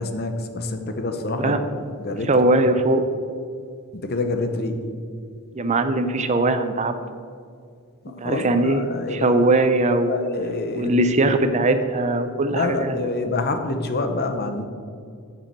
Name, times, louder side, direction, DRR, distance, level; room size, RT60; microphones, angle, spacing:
voice 1, 0.0-1.7 2.0-2.4 3.9-4.8 8.2-9.3 10.1-10.9 12.5-14.6, left 3 dB, 45° left, 6 dB, 0.8 m, -27 dB
voice 2, 2.2-3.0 5.5-6.9 8.2-8.8 9.1-10.2 10.7-13.1, right 2 dB, 30° right, 8 dB, 0.5 m, -20 dB
7.5 x 6.9 x 6.0 m, 2.2 s
head